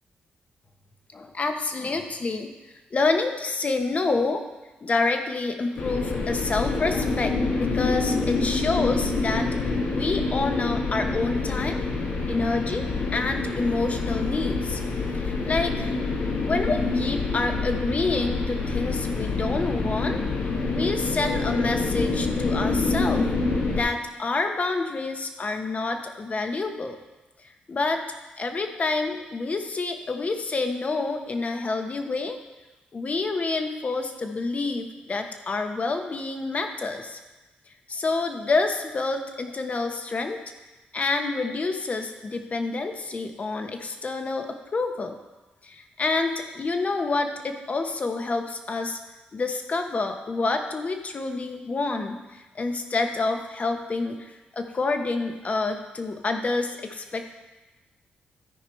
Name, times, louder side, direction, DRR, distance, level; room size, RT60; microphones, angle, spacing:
voice 1, 1.1-2.5 2.9-4.4 4.8-9.5 9.9-11.8 12.3-14.8 15.1-16.0 16.4-20.2 20.7-23.3 23.7-27.0 27.7-32.4 32.9-37.2 37.9-40.4 40.9-45.2 45.6-49.0 49.3-57.3, left 3 dB, 40° left, 5 dB, 1.1 m, -28 dB
sound 1, 5.8-23.8, left 3 dB, 70° left, 1.5 m, -26 dB
13.5 x 5.0 x 4.5 m, 1.1 s
cardioid pair, 75°, 4 cm